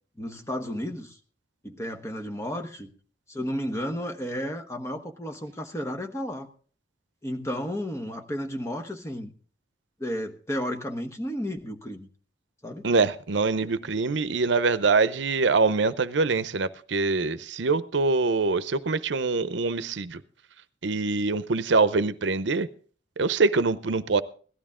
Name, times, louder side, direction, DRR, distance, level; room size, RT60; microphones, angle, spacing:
voice 1, 0.2-1.2 1.6-2.9 3.3-6.5 7.2-9.3 10.0-12.1 12.6-12.9 13.6-13.7, equal, 15° left, 1.1 m, -33 dB
voice 2, 12.8-20.2 20.8-22.7 23.2-24.2, right 4 dB, 80° right, 0.7 m, -24 dB
17.0 x 12.5 x 3.7 m
head